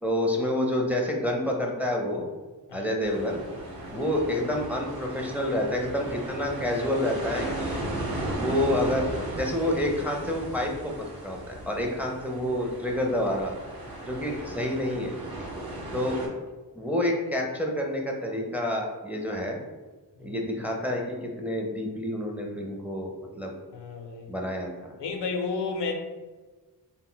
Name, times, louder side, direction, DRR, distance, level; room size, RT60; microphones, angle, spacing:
voice 1, 0.0-2.3 2.7-3.4 3.9-7.8 8.4-9.1 9.4-13.5 14.0-15.1 15.9-16.2 16.8-19.6 20.2-21.0 21.4-23.1 23.4-23.5 24.3-24.7, left 1 dB, 5° right, 0 dB, 0.4 m, -28 dB
sound 1, 3.0-16.3, right 1 dB, 60° right, 0.8 m, -36 dB
voice 2, 23.7-24.3 25.0-25.9, left 4 dB, 80° left, 3 dB, 0.5 m, -32 dB
2.1 x 2.1 x 3.7 m, 1.3 s
cardioid pair, 50°, 41 cm